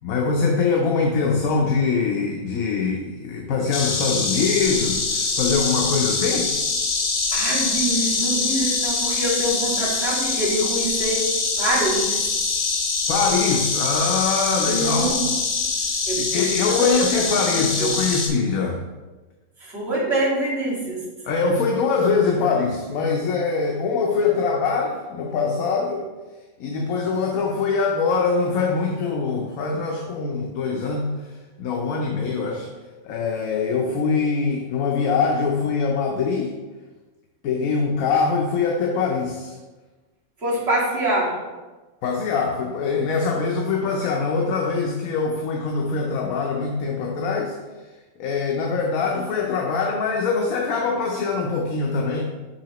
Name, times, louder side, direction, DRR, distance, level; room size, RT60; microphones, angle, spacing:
voice 1, 0.0-6.5 13.1-15.2 16.2-18.8 21.2-26.1 26.6-31.1 31.6-32.7 33.0-36.5 37.4-39.6 42.0-47.6 48.2-52.2, left 4 dB, 75° left, 0 dB, 1.1 m, -23 dB
Insect, 3.7-18.3, left 4 dB, 50° left, 0.9 m, -24 dB
voice 2, 7.3-11.2 11.6-12.2 14.7-15.2 16.1-17.9 19.6-21.0 40.4-41.3, right 1 dB, 45° right, -9 dB, 2.4 m, -25 dB
5.7 x 5.6 x 3.0 m, 1.2 s
omnidirectional pair, 1.5 m